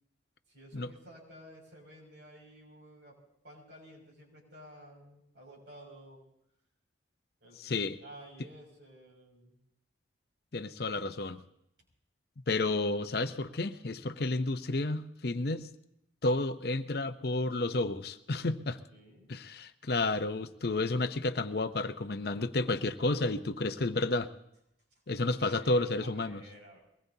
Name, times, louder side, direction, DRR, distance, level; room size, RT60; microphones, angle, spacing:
voice 1, 0.5-3.2 3.4-6.2 7.4-9.6 18.9-19.3 25.2-26.8, equal, 65° right, -1 dB, 6.2 m, -53 dB
voice 2, 7.6-8.0 10.5-11.4 12.5-15.7 16.2-18.8 19.3-24.3 25.1-26.4, left 2 dB, 55° left, 10 dB, 0.7 m, -31 dB
23.0 x 20.0 x 2.8 m, 0.78 s
head